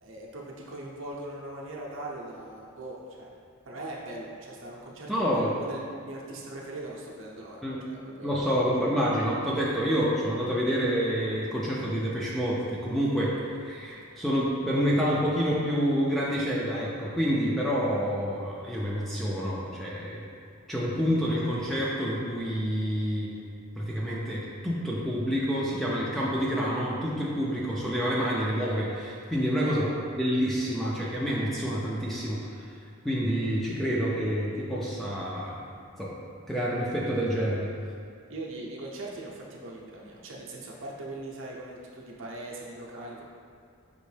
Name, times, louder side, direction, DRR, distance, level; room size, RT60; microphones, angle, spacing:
voice 1, 0.0-3.3 3.7-7.6 7.9-8.5 29.6-29.7 38.3-43.2, right 2 dB, 60° right, -3 dB, 0.6 m, -40 dB
voice 2, 5.1-5.5 7.6-7.8 8.2-13.3 13.6-20.3 20.7-23.3 23.8-29.9 30.2-32.7 33.0-35.7 36.0-36.1 36.5-37.7, equal, ahead, -6 dB, 0.4 m, -28 dB
5.2 x 3.0 x 3.2 m, 2.3 s
head